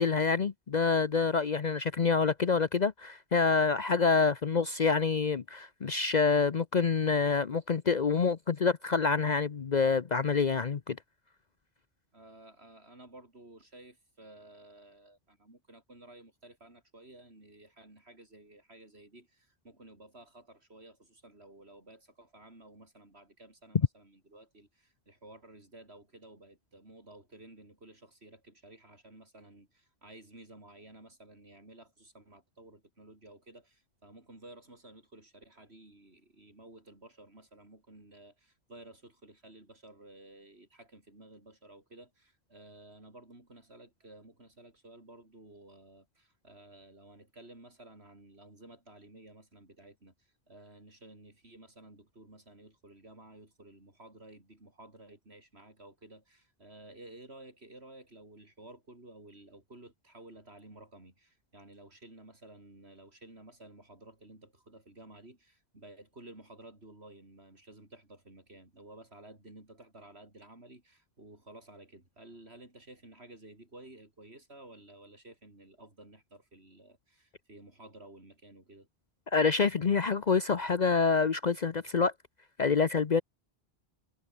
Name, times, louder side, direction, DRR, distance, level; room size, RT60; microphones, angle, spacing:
voice 1, 0.0-11.0 79.3-82.1 82.6-83.2, left 5 dB, 45° left, 0.9 m, -27 dB
voice 2, 12.1-78.9, right 2 dB, 80° right, 5.7 m, -54 dB
omnidirectional pair, 1.1 m